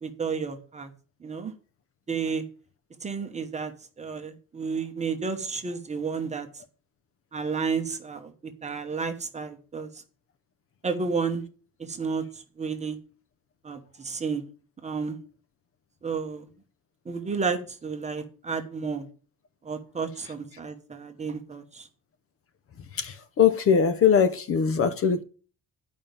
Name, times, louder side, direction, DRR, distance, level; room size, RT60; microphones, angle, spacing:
voice 1, 0.0-0.9 1.2-1.5 2.1-2.4 3.0-3.7 4.0-6.5 7.3-9.9 10.8-11.4 11.8-12.3 12.6-13.0 13.6-14.4 14.8-15.2 16.0-16.5 17.1-19.1 19.6-21.9, right 5 dB, 20° right, 1.0 m, -31 dB
voice 2, 22.9-25.2, left 7 dB, 40° left, 0.8 m, -21 dB
11.0 x 5.2 x 7.0 m
cardioid pair, 180°, 34 cm